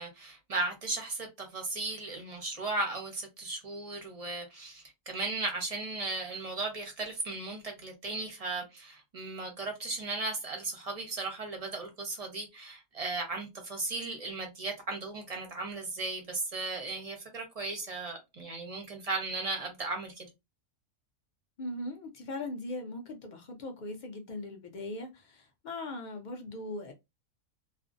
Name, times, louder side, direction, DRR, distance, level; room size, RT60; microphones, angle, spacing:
voice 1, 0.0-20.3, right 3 dB, 40° right, 0.6 m, -36 dB
voice 2, 21.6-26.9, left 2 dB, 60° left, 0.5 m, -39 dB
2.5 x 2.0 x 2.5 m
omnidirectional pair, 1.4 m